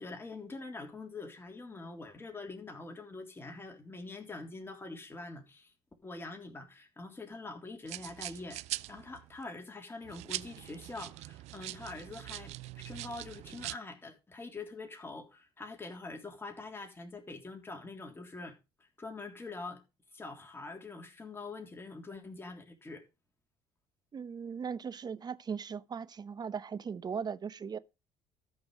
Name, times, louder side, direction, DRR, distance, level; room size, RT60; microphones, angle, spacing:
voice 1, 0.0-5.7 6.0-8.6 8.9-18.5 18.8-19.8 20.1-23.0, left 3 dB, 20° left, 3.4 m, -44 dB
sound 1, 7.9-9.4 10.0-13.8, right 18 dB, 65° right, 0.5 m, -42 dB
voice 2, 24.1-27.8, right 6 dB, 35° right, 0.8 m, -38 dB
13.5 x 6.1 x 5.1 m
hypercardioid pair, 65°, 12 cm